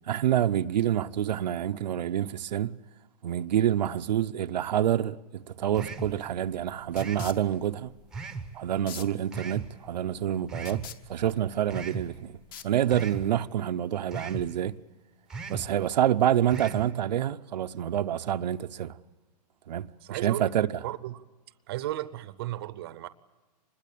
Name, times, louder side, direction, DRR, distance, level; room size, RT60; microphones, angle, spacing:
voice 1, 0.1-2.8 3.2-7.9 8.5-12.4 12.6-14.8 15.5-19.0 19.7-20.8, right 10 dB, 80° right, 0.7 m, -27 dB
sound 1, 5.6-13.2, left 10 dB, 35° left, 0.9 m, -49 dB
sound 2, 5.7-6.2 6.9-7.3 8.1-8.5 9.3-9.7 10.5-10.9 11.7-12.1 12.9-13.3 14.1-14.5 15.3-15.7 16.5-16.9, right 4 dB, 5° right, 0.7 m, -37 dB
voice 2, 20.0-20.5 20.8-21.2 21.7-23.1, right 14 dB, 35° right, 0.7 m, -35 dB
25.5 x 21.0 x 8.5 m
hypercardioid pair, 175°, 21 cm